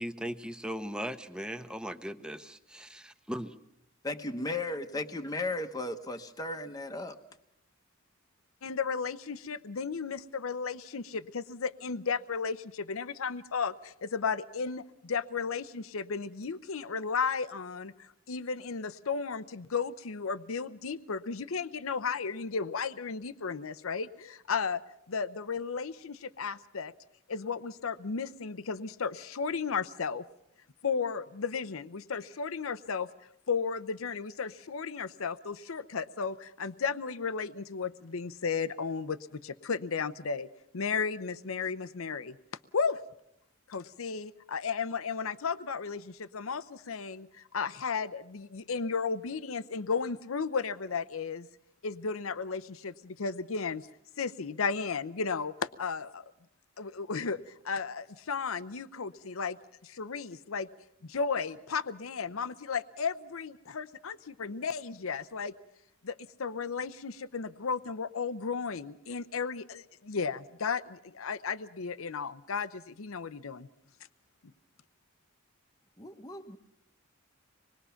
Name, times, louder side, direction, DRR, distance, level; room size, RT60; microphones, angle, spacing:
voice 1, 0.0-3.5, equal, 5° right, 9 dB, 0.9 m, -38 dB
voice 2, 4.0-7.2 76.0-76.6, left 2 dB, 20° left, 5 dB, 1.0 m, -35 dB
voice 3, 8.6-24.8 25.1-26.9 27.3-30.3 30.8-33.1 33.5-40.5 40.7-42.4 42.7-43.0 43.7-51.5 51.8-53.9 54.2-56.3 56.8-59.6 59.8-60.7 61.0-65.5 66.0-73.7, left 5 dB, 85° left, 14 dB, 0.7 m, -34 dB
25.5 x 21.0 x 5.7 m, 0.78 s
head